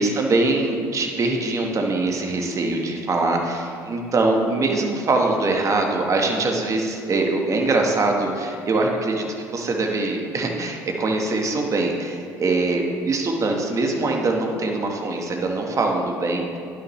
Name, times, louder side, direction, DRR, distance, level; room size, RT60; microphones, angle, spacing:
voice 1, 0.0-16.6, right 2 dB, 40° right, 2 dB, 1.3 m, -23 dB
11.0 x 5.9 x 3.1 m, 2.3 s
supercardioid pair, 75°, 8 cm